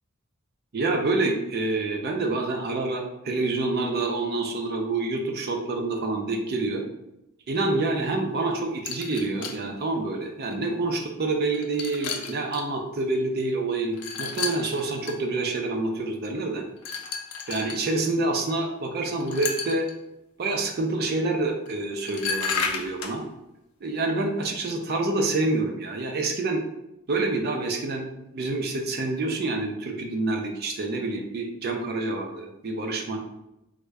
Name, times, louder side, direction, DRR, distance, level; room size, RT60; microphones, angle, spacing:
voice 1, 0.7-6.8 7.5-16.6 17.5-19.9 20.4-23.2 23.8-26.7 27.1-28.1 28.3-33.2, right 2 dB, 45° right, 2 dB, 0.4 m, -27 dB
sound 1, 8.9-9.6 10.5-10.6 11.4-12.7 13.9-15.2 16.8-17.8 19.2-19.9 21.6-21.7 22.1-23.2, left 5 dB, 90° left, 0.4 m, -32 dB
3.5 x 2.1 x 3.3 m, 0.90 s
head